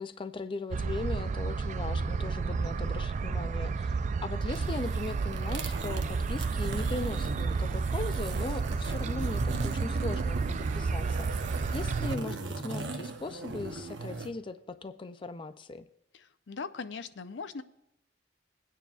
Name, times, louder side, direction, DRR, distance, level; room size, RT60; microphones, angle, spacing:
voice 1, 0.0-4.0 4.2-11.4 11.7-15.9, left 3 dB, 30° left, 10 dB, 0.4 m, -39 dB
sound 1, 0.7-12.2, right 4 dB, 40° right, 0.3 m, -31 dB
sound 2, 4.4-14.3, right 3 dB, 85° right, 0.9 m, -38 dB
voice 2, 16.1-17.6, left 4 dB, 80° left, 11 dB, 0.6 m, -40 dB
21.5 x 9.2 x 2.4 m, 0.84 s
head